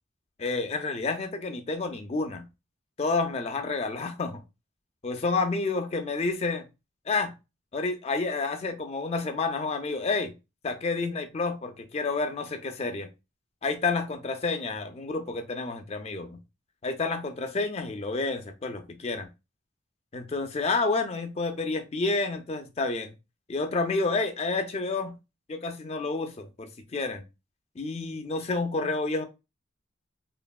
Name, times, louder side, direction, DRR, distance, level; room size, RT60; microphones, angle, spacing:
voice 1, 0.4-2.5 3.0-4.4 5.0-6.7 7.1-7.3 7.7-10.3 10.6-13.1 13.6-16.4 16.8-19.3 20.1-23.1 23.5-25.2 25.5-27.2 27.8-29.3, left 3 dB, 30° left, 0.4 m, -29 dB
3.2 x 2.0 x 2.3 m
head